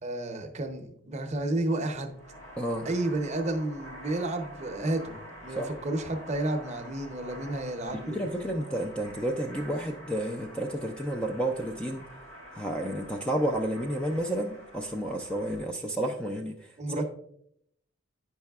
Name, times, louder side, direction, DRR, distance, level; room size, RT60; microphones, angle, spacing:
voice 1, 0.0-2.1 2.8-8.2 16.8-17.1, right 2 dB, 35° right, 5 dB, 0.6 m, -31 dB
sound 1, 2.0-15.7, equal, 70° left, 1.8 m, -47 dB
voice 2, 2.6-2.9 5.6-5.7 8.1-12.0 12.5-16.5, right 1 dB, 5° left, 3 dB, 0.3 m, -31 dB
9.5 x 5.4 x 2.3 m, 0.71 s
head